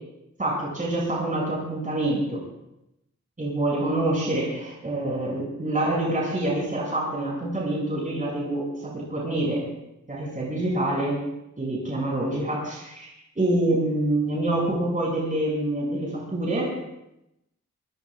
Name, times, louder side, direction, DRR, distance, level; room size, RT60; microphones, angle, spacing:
voice 1, 0.4-2.4 3.4-9.6 10.1-11.2 11.6-16.7, right 1 dB, 25° right, -5 dB, 7.2 m, -26 dB
24.0 x 23.5 x 2.6 m, 0.87 s
wide cardioid pair, 125°, 29 cm